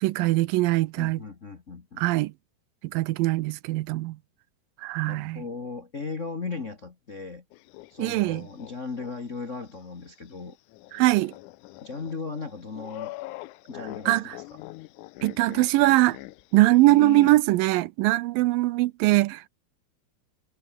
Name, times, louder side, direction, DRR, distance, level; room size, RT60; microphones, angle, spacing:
voice 1, 0.0-1.2 2.0-2.3 2.8-4.2 4.8-5.4 8.0-8.4 10.9-11.3 14.1-14.4 15.2-16.2 16.5-19.5, right 18 dB, 80° right, 2.3 m, -22 dB
voice 2, 1.0-2.0 5.1-7.4 7.9-10.6 11.8-13.1 13.7-14.6, left 4 dB, 50° left, 0.8 m, -37 dB
sound 1, 7.5-9.1 9.5-9.6 10.7-17.4, left 19 dB, 80° left, 1.8 m, -42 dB
omnidirectional pair, 4.1 m